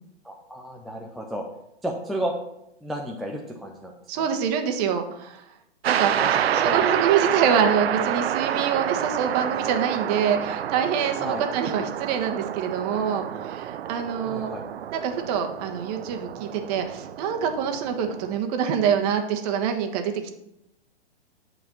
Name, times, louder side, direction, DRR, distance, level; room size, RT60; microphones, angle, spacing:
voice 1, 0.2-1.5 1.8-2.3 2.8-3.9 4.2-4.3 6.1-6.9 11.2-11.4 14.2-14.6, right 1 dB, ahead, -1 dB, 0.4 m, -32 dB
voice 2, 4.1-5.4 5.8-6.1 6.6-14.5 14.9-20.1, right 7 dB, 35° right, 5 dB, 1.3 m, -25 dB
sound 1, 5.8-18.4, right 10 dB, 65° right, 0.6 m, -28 dB
9.2 x 4.8 x 6.9 m, 0.82 s
hypercardioid pair, 125°, 33 cm